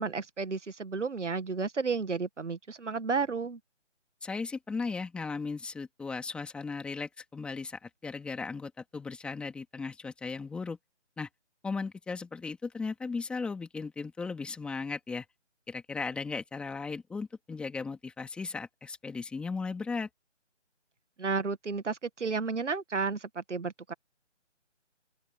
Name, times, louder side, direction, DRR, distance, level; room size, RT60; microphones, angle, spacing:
voice 1, 0.0-3.6 21.2-23.9, right 4 dB, 70° right, 1.6 m, -32 dB
voice 2, 4.2-10.8 11.2-11.3 11.6-15.2 15.7-20.1, left 4 dB, 5° left, 2.5 m, -36 dB
open air
figure-of-eight pair, 160°, 37 cm